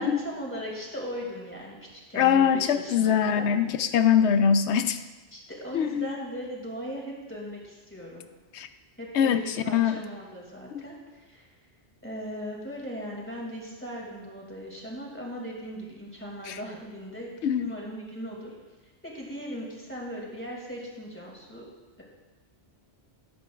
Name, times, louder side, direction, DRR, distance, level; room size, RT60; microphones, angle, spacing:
voice 1, 0.0-3.5 5.3-8.2 9.0-11.5 12.0-17.3 17.6-18.5 19.0-21.6, equal, 10° left, -3 dB, 2.3 m, -38 dB
voice 2, 2.2-5.0 5.7-6.1 8.5-8.7 9.1-9.4 9.7-10.0 10.7-10.8 16.5-16.6 17.4-17.7, left 8 dB, 90° left, 10 dB, 0.9 m, -22 dB
17.5 x 8.2 x 2.4 m, 1.2 s
omnidirectional pair, 1.1 m